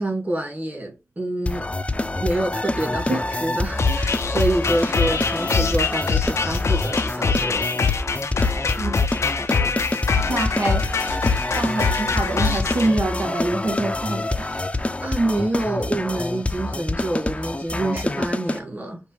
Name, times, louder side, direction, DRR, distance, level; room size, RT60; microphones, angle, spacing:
voice 1, 0.0-1.7 2.2-7.7 14.7-19.0, right 1 dB, 40° right, 3.1 m, -27 dB
sound 1, 1.5-18.6, left 2 dB, 25° left, 0.5 m, -27 dB
sound 2, 3.8-12.9, left 4 dB, 85° left, 0.5 m, -23 dB
voice 2, 10.3-10.8 11.5-14.6, right 2 dB, 90° right, 1.2 m, -25 dB
5.9 x 2.6 x 3.3 m
cardioid pair, 50°, 5 cm